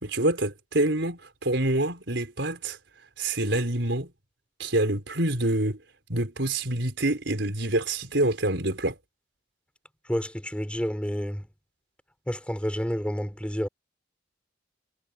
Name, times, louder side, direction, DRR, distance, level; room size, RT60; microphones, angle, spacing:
voice 1, 0.0-2.8 3.2-4.1 4.6-5.8 6.1-8.9, right 1 dB, 70° right, 5.0 m, -26 dB
voice 2, 10.1-11.5 12.3-13.7, equal, 5° left, 3.8 m, -29 dB
head